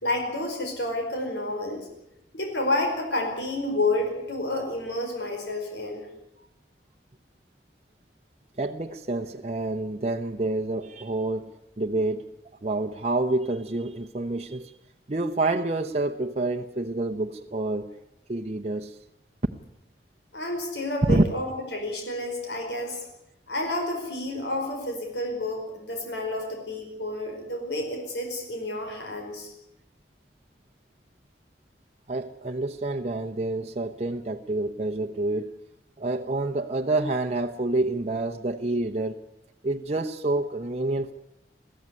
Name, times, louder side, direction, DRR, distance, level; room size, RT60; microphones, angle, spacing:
voice 1, 0.0-1.9 2.3-6.1 20.3-23.0 23.5-29.5, left 1 dB, 80° left, 2 dB, 5.0 m, -30 dB
voice 2, 8.6-11.5 11.8-12.2 12.6-14.7 15.1-17.9 18.3-19.0 21.1-21.2 32.1-35.5 36.0-39.2 39.6-41.1, right 2 dB, 35° right, 2 dB, 0.9 m, -28 dB
22.0 x 15.0 x 9.7 m, 0.86 s
head